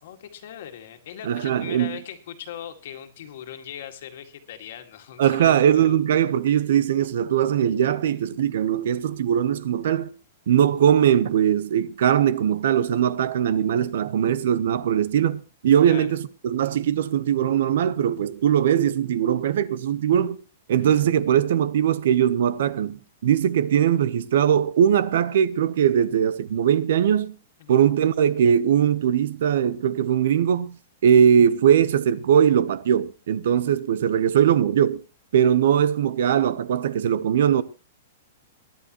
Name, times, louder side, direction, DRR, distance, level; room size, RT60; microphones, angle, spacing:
voice 1, 0.0-6.0 15.9-16.2 27.6-27.8, left 10 dB, 55° left, 2.0 m, -40 dB
voice 2, 1.2-2.0 5.2-10.1 10.5-20.4 20.7-27.4 27.7-30.8 31.0-35.0 35.3-37.6, right 9 dB, 65° right, 0.9 m, -20 dB
23.0 x 10.5 x 3.0 m
supercardioid pair, 170°, 0 cm